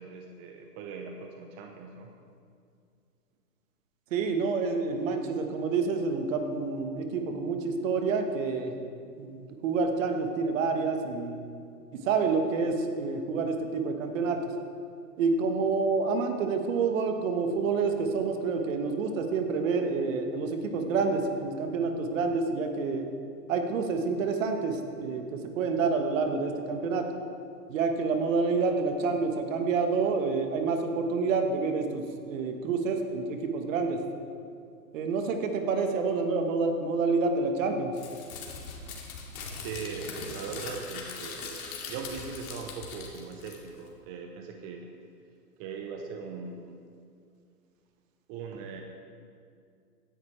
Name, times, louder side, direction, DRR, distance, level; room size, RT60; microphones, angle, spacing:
voice 1, 0.0-2.1 39.5-44.9 45.6-46.8 48.3-48.8, right 5 dB, 25° right, 3 dB, 0.8 m, -40 dB
voice 2, 4.1-8.8 9.2-11.4 12.0-14.5 15.2-23.1 23.5-27.1 27.7-34.0 34.9-38.0, right 4 dB, 50° right, 5 dB, 1.6 m, -28 dB
Crumpling crinkling, 37.9-43.9, left 4 dB, 60° left, 2.6 m, -41 dB
16.5 x 10.5 x 3.4 m, 2.3 s
hypercardioid pair, 125°, 48 cm